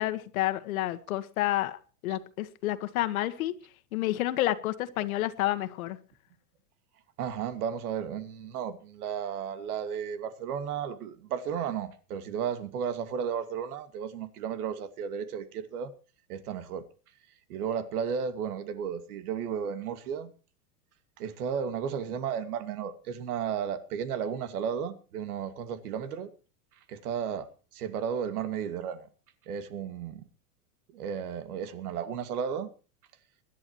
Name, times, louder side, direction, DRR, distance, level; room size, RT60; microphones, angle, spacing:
voice 1, 0.0-3.6 3.9-6.0, left 15 dB, 60° left, 1.6 m, -30 dB
voice 2, 7.2-15.9 16.3-16.8 17.5-20.3 21.2-26.3 26.9-27.5 27.7-29.1 29.5-30.2 30.9-32.7, right 7 dB, 70° right, 2.4 m, -33 dB
24.5 x 11.5 x 3.1 m
supercardioid pair, 150°, 46 cm